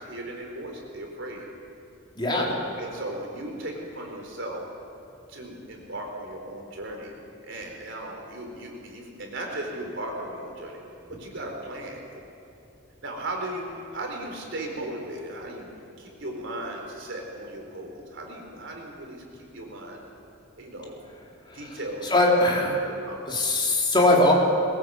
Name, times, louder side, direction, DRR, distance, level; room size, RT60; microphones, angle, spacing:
voice 1, 0.0-1.5 2.3-4.6 5.3-7.1 7.4-10.8 11.1-12.2 13.0-15.7 16.0-20.0 20.6-21.0 21.5-22.1 22.4-23.4, right 1 dB, 65° right, 1 dB, 4.3 m, -37 dB
voice 2, 2.2-2.5 21.5-21.6 22.0-22.8 23.3-24.3, left 2 dB, 25° left, -2 dB, 3.8 m, -21 dB
21.5 x 19.5 x 7.9 m, 2.7 s
head